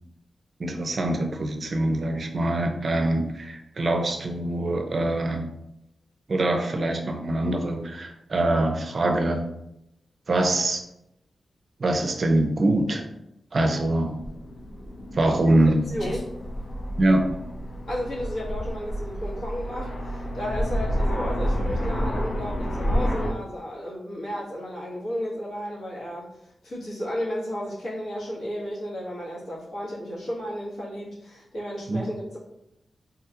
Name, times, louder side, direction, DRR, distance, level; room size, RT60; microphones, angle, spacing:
voice 1, 0.6-5.4 6.3-9.4 10.3-10.8 11.8-13.1 13.5-14.1 15.1-15.8 17.0-17.3 31.9-32.1, right 1 dB, 45° right, 4 dB, 0.4 m, -24 dB
Aircraft, 13.9-23.3, equal, 60° left, 0.7 m, -29 dB
voice 2, 15.9-16.3 17.9-32.4, equal, 80° left, -6 dB, 1.3 m, -33 dB
3.6 x 2.3 x 2.8 m, 0.83 s
wide cardioid pair, 120°, 0 cm